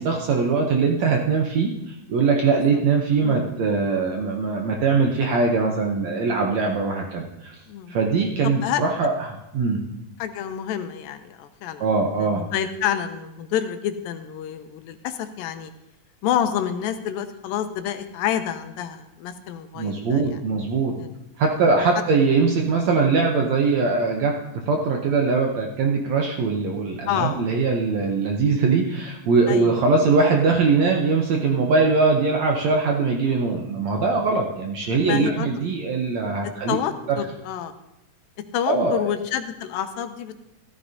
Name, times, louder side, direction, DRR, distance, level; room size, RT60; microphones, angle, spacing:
voice 1, 0.0-7.6 7.9-9.8 11.8-12.5 19.7-20.9 21.4-24.4 24.7-36.8 37.1-37.2 38.7-39.1, right 4 dB, 75° right, 1 dB, 1.7 m, -21 dB
voice 2, 3.2-3.5 7.7-8.0 8.4-8.8 10.2-11.8 12.2-15.7 16.2-20.2 21.0-21.1 27.1-27.5 29.5-29.7 35.0-35.5 36.7-37.7 38.5-40.4, left 10 dB, 85° left, 8 dB, 2.4 m, -28 dB
14.5 x 13.0 x 2.8 m, 0.87 s
omnidirectional pair, 4.1 m